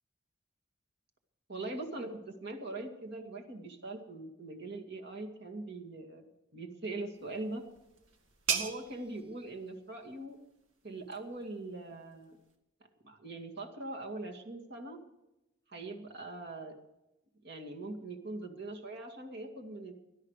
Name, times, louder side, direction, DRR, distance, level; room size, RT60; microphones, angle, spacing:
voice 1, 1.5-6.2 6.5-7.6 8.5-10.4 10.8-12.4 13.0-15.0 15.7-16.8 17.4-19.9, right 2 dB, 55° right, 2 dB, 2.2 m, -42 dB
sound 1, 7.1-12.5, right 7 dB, 80° right, 2.0 m, -41 dB
18.0 x 12.0 x 4.9 m, 0.93 s
head